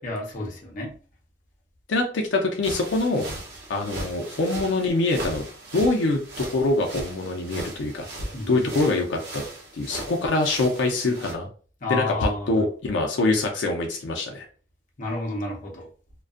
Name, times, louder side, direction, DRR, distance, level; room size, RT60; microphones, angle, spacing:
voice 1, 0.0-0.9 8.3-8.7 11.8-12.7 15.0-15.9, left 2 dB, 45° left, 0.7 m, -31 dB
voice 2, 1.9-3.3 3.7-5.5 5.7-8.1 8.5-9.4 9.7-11.5 11.9-14.5, left 2 dB, 80° left, 0.5 m, -24 dB
sound 1, 2.6-11.3, right 1 dB, 65° right, 0.7 m, -38 dB
2.4 x 2.2 x 2.4 m
head